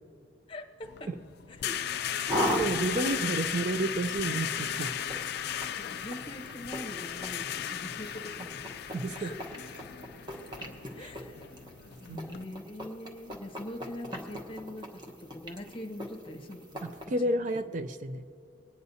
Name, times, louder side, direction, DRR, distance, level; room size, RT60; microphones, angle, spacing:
voice 1, 0.5-1.1 1.5-1.8 2.2-2.4 2.9-3.1 5.7-8.6 9.2-9.4 10.9-11.6 12.0-17.3, left 1 dB, 30° left, 3 dB, 0.9 m, -43 dB
sound 1, 0.8-12.4, left 9 dB, 55° left, 0.3 m, -36 dB
sound 2, 2.3-17.0, equal, 25° right, 1.1 m, -39 dB
voice 2, 2.6-4.9 8.9-9.3 11.0-11.1 12.1-12.2 16.8-18.2, right 2 dB, 40° right, 9 dB, 0.4 m, -31 dB
25.0 x 9.6 x 2.7 m, 2.5 s
head